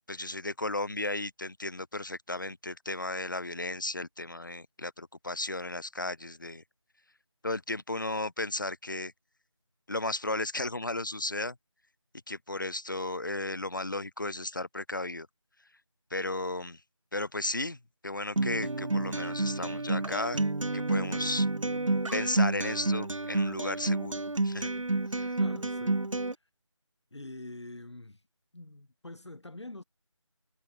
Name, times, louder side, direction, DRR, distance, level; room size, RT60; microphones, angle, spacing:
voice 1, 0.1-6.6 7.4-9.1 9.9-11.6 12.3-15.3 16.1-16.8 17.1-17.8 18.0-20.4 20.7-21.5 22.1-24.7 25.1-25.3, left 2 dB, 40° left, 0.6 m, -34 dB
Acoustic guitar, 18.4-26.3, right 2 dB, 80° right, 0.8 m, -30 dB
voice 2, 25.4-26.0 26.3-26.4 27.1-28.2 28.5-29.8, left 2 dB, 60° left, 1.9 m, -45 dB
figure-of-eight pair, 165°, 16 cm